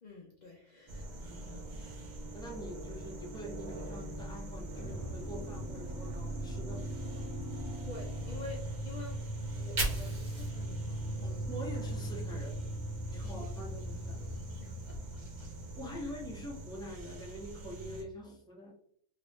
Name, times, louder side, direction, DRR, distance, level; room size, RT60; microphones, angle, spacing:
voice 1, 0.0-1.2 7.7-11.4 13.1-13.5 13.8-13.9 14.2-15.2 15.9-16.1, left 3 dB, 75° left, -2 dB, 0.4 m, -49 dB
sound 1, 0.9-18.0, right 2 dB, 85° right, 0.4 m, -44 dB
voice 2, 1.2-2.0 2.3-6.9 11.2-12.6 13.1-14.2 15.7-18.7, equal, 5° left, -2 dB, 0.5 m, -45 dB
sound 2, 4.7-17.0, right 1 dB, 45° left, 0.8 m, -40 dB
Fire, 9.4-12.5 12.9-15.0, right 1 dB, 35° right, 1.0 m, -41 dB
3.0 x 2.5 x 3.3 m, 0.67 s
omnidirectional pair, 1.6 m